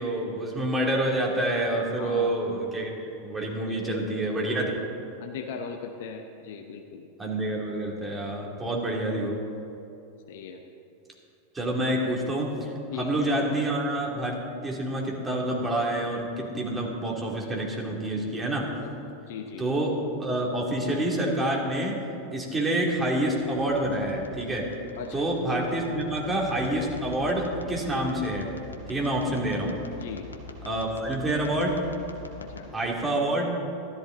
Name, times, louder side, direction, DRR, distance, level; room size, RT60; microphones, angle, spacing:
voice 1, 0.0-2.9 3.2-4.7 7.2-9.4 11.5-12.5 13.0-18.7 19.6-19.9 20.2-22.0 22.3-24.7 25.1-28.5 28.9-29.7 30.6-31.8 32.7-33.5, right 1 dB, 15° right, -2 dB, 2.8 m, -27 dB
voice 2, 2.0-2.4 3.7-4.6 5.2-7.1 10.3-10.6 12.9-13.1 18.8-19.0 19.3-19.6 25.0-25.3 30.0-30.3 32.4-32.7, left 6 dB, 60° left, 4 dB, 0.8 m, -39 dB
sound 1, 22.8-32.6, left 3 dB, 85° left, 1.3 m, -44 dB
13.5 x 12.5 x 4.0 m, 2.7 s
figure-of-eight pair, 90°, 0 cm